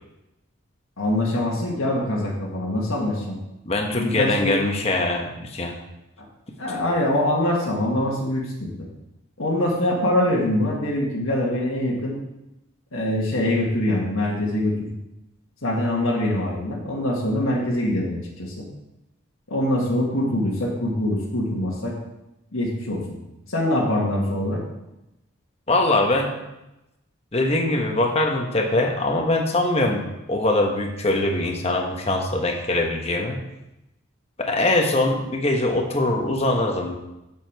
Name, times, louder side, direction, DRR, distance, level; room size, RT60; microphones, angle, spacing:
voice 1, 1.0-3.4 4.0-4.5 6.6-8.9 9.4-12.2 12.9-14.9 15.6-18.7 19.5-22.0 22.5-23.0 23.5-24.6, left 1 dB, 85° left, -3 dB, 1.8 m, -24 dB
voice 2, 3.7-5.7 6.7-6.8 25.7-26.3 27.3-33.4 34.4-37.0, left 2 dB, 30° left, 2 dB, 1.1 m, -22 dB
7.7 x 7.3 x 4.6 m, 0.92 s
head